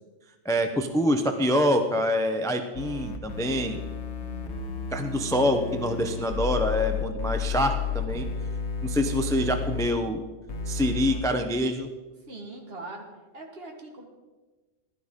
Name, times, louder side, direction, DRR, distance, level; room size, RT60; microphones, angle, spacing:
voice 1, 0.4-3.8 4.9-8.3 8.8-10.2 10.7-11.9, equal, 5° left, 6 dB, 0.5 m, -25 dB
sound 1, 2.7-9.9 10.5-11.2, left 6 dB, 60° left, 1.2 m, -32 dB
voice 2, 4.2-4.7 9.0-9.5 12.3-13.1 13.3-14.0, right 2 dB, 50° right, 2 dB, 1.8 m, -42 dB
15.5 x 12.0 x 3.7 m, 1.2 s
omnidirectional pair, 1.3 m